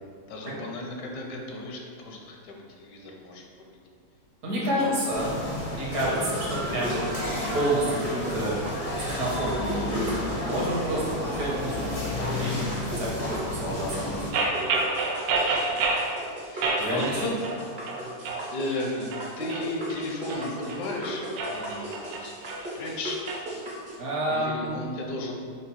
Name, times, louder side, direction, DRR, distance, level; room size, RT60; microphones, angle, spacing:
voice 1, 0.3-3.8 4.7-5.0 15.5-15.8 16.5-17.6 18.0-18.2 18.5-22.3 22.7-23.3 24.3-25.3, left 1 dB, 80° left, 1 dB, 1.3 m, -35 dB
voice 2, 4.4-5.4 5.8-7.0 7.5-8.6 9.0-10.1 10.4-14.3 16.8-17.2 24.0-24.7, right 1 dB, 65° right, -5 dB, 1.4 m, -29 dB
sound 1, 5.1-14.3, left 1 dB, 40° left, 0.5 m, -32 dB
sound 2, 6.7-24.0, right 1 dB, 45° right, 0.6 m, -38 dB
sound 3, 14.3-16.1 16.6-17.6 17.9-18.4 18.9-20.8 21.3-23.4, right 3 dB, 90° right, 1.2 m, -28 dB
5.1 x 2.0 x 4.2 m, 2.2 s
omnidirectional pair, 1.8 m